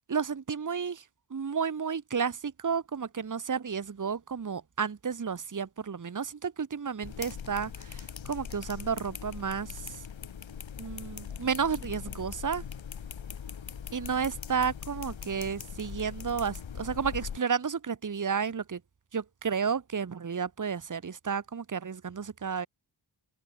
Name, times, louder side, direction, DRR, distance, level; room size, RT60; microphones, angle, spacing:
voice 1, 0.1-1.0 1.3-9.7 10.8-12.6 13.9-18.8 19.1-22.7, right 6 dB, 40° right, 1.4 m, -32 dB
sound 1, 7.0-17.4, left 7 dB, 70° left, 2.2 m, -41 dB
open air
cardioid pair, 75°, 47 cm